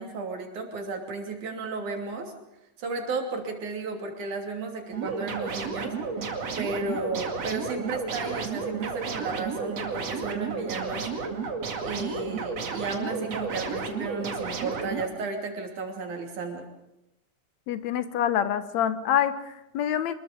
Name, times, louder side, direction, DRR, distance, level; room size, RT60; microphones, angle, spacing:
voice 1, 0.0-2.3 2.8-5.9 6.6-11.1 11.8-16.7, right 3 dB, 80° right, 3 dB, 4.4 m, -34 dB
sound 1, 4.9-15.1, right 5 dB, 60° right, 3.3 m, -32 dB
voice 2, 17.7-20.1, left 10 dB, 70° left, 12 dB, 2.2 m, -26 dB
25.5 x 21.5 x 5.2 m, 0.91 s
omnidirectional pair, 3.4 m